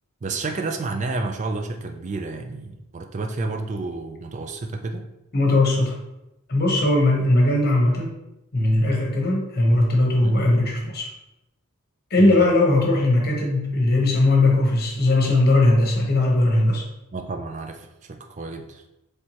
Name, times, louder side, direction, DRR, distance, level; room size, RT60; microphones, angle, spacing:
voice 1, 0.2-5.1 10.2-10.4 12.2-12.5 17.1-18.8, right 3 dB, 35° right, 5 dB, 0.4 m, -30 dB
voice 2, 5.3-6.0 6.5-8.1 8.5-11.1 12.1-16.8, left 2 dB, 45° left, -1 dB, 0.9 m, -19 dB
4.4 x 3.3 x 3.0 m, 0.91 s
head